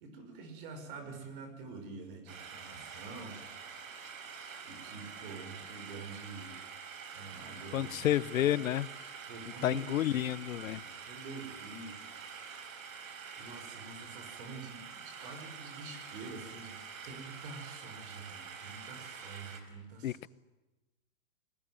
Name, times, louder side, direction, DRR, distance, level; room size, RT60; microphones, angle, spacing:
voice 1, 0.0-3.8 4.6-6.5 7.1-8.1 8.3-8.6 9.3-9.8 10.1-12.5 13.4-16.8 17.1-20.3, right 4 dB, 40° right, 7 dB, 5.7 m, -47 dB
sound 1, 2.3-19.6, right 6 dB, 90° right, 4.8 m, -47 dB
voice 2, 7.7-8.9 9.6-10.8 20.0-20.3, left 12 dB, 85° left, 20 dB, 0.9 m, -30 dB
29.5 x 20.0 x 9.2 m, 1.1 s
supercardioid pair, 170°, 40 cm